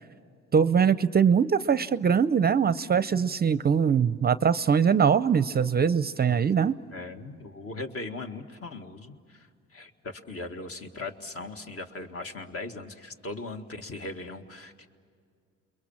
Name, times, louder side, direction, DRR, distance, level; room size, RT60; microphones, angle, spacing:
voice 1, 0.5-6.7, right 7 dB, 30° right, 15 dB, 0.5 m, -22 dB
voice 2, 6.9-14.9, left 2 dB, 50° left, 5 dB, 1.9 m, -39 dB
29.0 x 22.5 x 7.3 m, 2.2 s
cardioid pair, 90°, 30 cm